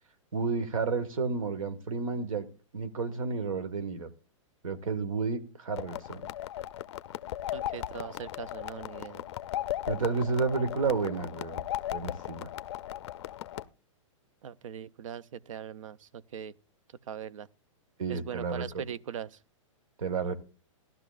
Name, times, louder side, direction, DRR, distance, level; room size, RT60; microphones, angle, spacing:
voice 1, 0.3-2.5 2.7-4.1 4.6-6.2 9.9-11.6 11.9-12.5 18.0-18.8 20.0-20.3, right 4 dB, 90° right, 1.6 m, -31 dB
sound 1, 5.7-13.6, left 12 dB, 55° left, 0.5 m, -37 dB
voice 2, 7.5-9.3 14.4-16.6 17.1-17.5 18.1-19.4, right 8 dB, 75° right, 0.6 m, -40 dB
15.5 x 12.0 x 2.5 m
hypercardioid pair, 160°, 17 cm